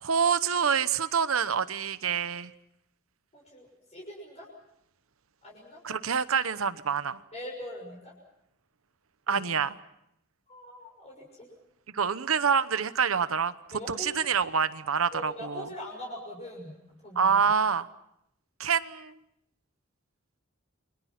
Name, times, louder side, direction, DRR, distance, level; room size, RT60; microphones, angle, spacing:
voice 1, 0.0-2.5 5.8-7.2 9.3-9.8 11.9-13.5 13.9-15.7 17.2-17.9 18.6-19.2, right 6 dB, 80° right, 14 dB, 1.0 m, -26 dB
voice 2, 3.3-4.5 5.4-5.8 7.3-8.1 9.3-9.5 10.5-11.5 13.7-14.1 15.1-16.7 17.0-17.4, left 1 dB, 30° left, -2 dB, 6.3 m, -42 dB
29.5 x 23.0 x 5.9 m, 0.78 s
head